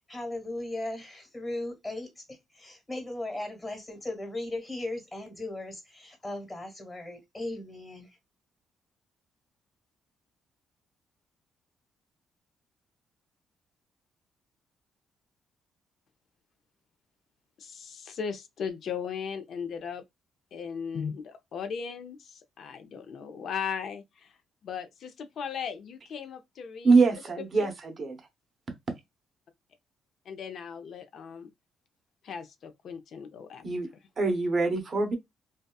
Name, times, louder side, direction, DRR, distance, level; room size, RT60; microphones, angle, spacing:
voice 1, 0.1-8.2, left 2 dB, 15° left, 1.4 m, -37 dB
voice 2, 17.6-20.0 20.5-24.3 24.6-27.0 27.4-27.7 30.3-31.5 32.2-33.7, left 7 dB, 65° left, 0.5 m, -37 dB
voice 3, 26.8-28.2 33.6-33.9 34.2-35.2, right 4 dB, 40° right, 0.8 m, -24 dB
2.7 x 2.2 x 2.2 m
cardioid pair, 90°, 0 cm